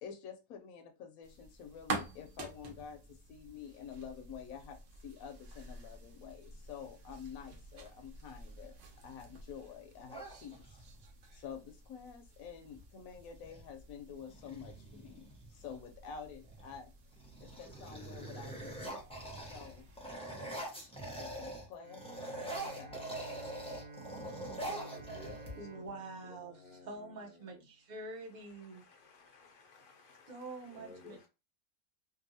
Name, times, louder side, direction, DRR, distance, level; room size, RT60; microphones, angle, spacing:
voice 1, 0.0-8.8 9.0-10.8 11.3-15.2 15.5-19.0 19.5-19.9 21.0-23.0, left 7 dB, 80° left, 1.0 m, -49 dB
sound 1, 1.2-20.2, right 3 dB, 65° right, 1.0 m, -49 dB
sound 2, 10.1-11.0 12.7-12.8 13.2-13.7 14.2-15.7 16.4-16.8 17.1-21.7 21.9-25.9, right 1 dB, 5° left, 0.4 m, -44 dB
Bowed string instrument, 21.8-27.5, right 2 dB, 90° right, 1.1 m, -52 dB
voice 2, 24.7-27.7 28.3-31.3, left 4 dB, 55° left, 0.6 m, -56 dB
voice 3, 25.6-28.8 30.3-31.2, right 2 dB, 40° right, 0.7 m, -46 dB
2.6 x 2.6 x 2.6 m
omnidirectional pair, 1.5 m